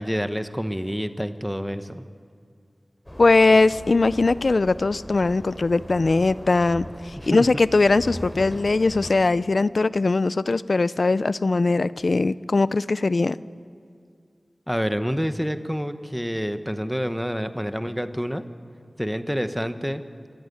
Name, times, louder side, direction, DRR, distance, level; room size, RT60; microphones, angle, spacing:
voice 1, 0.0-2.0 7.2-7.6 14.7-18.4 19.0-20.0, equal, ahead, 10 dB, 1.1 m, -28 dB
sound 1, 3.1-9.1, equal, 15° left, 3.5 m, -39 dB
voice 2, 3.2-13.4, left 3 dB, 65° left, 17 dB, 0.5 m, -20 dB
25.5 x 14.0 x 9.4 m, 2.2 s
wide cardioid pair, 75°, 0 cm